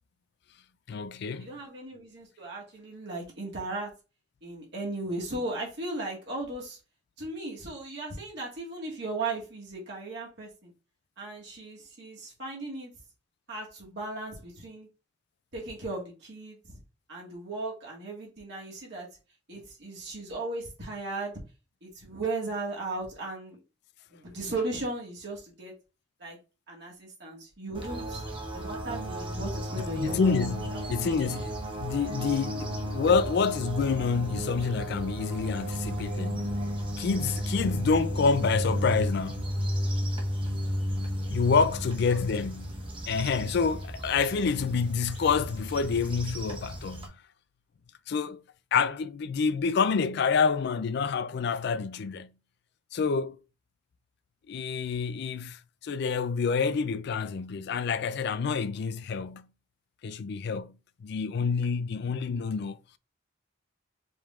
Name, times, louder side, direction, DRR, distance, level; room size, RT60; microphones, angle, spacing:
voice 1, 0.9-1.5 19.5-19.6 29.8-36.5 37.0-39.5 41.3-42.8 43.1-47.2 48.1-48.4 48.7-52.3 52.9-53.4 54.5-59.5 60.0-62.8, left 5 dB, 65° left, 0.4 m, -28 dB
voice 2, 1.4-3.9 4.4-6.8 7.2-10.7 11.2-12.9 13.5-14.9 15.5-16.8 17.1-19.1 19.5-21.3 21.8-23.6 24.1-25.7 26.2-26.4 26.7-28.2 28.5-30.3 30.7-30.9 31.2-31.4 42.1-42.2, right 2 dB, 65° right, 1.7 m, -36 dB
sound 1, 27.7-47.1, equal, 30° right, 1.0 m, -33 dB
4.9 x 3.5 x 2.4 m
head